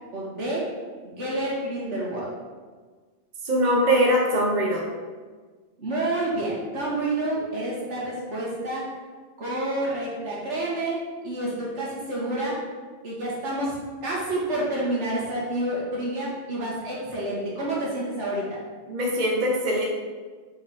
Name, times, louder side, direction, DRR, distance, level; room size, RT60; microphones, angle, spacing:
voice 1, 0.1-0.6 1.0-2.3 5.8-8.8 9.4-11.0 11.2-12.5 13.0-13.7 14.0-18.4, right 1 dB, 80° right, -6 dB, 2.0 m, -28 dB
voice 2, 3.4-4.9 18.9-19.8, equal, 40° right, -2 dB, 1.0 m, -22 dB
5.0 x 4.9 x 4.3 m, 1.4 s
omnidirectional pair, 1.2 m